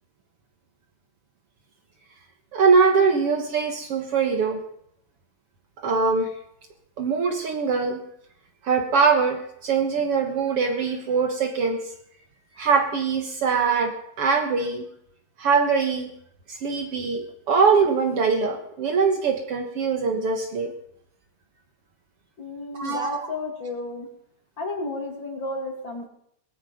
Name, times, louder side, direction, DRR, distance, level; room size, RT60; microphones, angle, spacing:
voice 1, 2.5-4.6 5.8-6.3 7.0-8.0 8.6-11.8 12.6-14.9 15.4-16.1 16.5-20.7 22.7-23.2, right 5 dB, 55° right, 4 dB, 2.1 m, -22 dB
voice 2, 22.4-24.1 24.6-26.1, left 2 dB, 40° left, 2 dB, 2.9 m, -32 dB
19.0 x 14.0 x 5.1 m, 0.72 s
omnidirectional pair, 3.4 m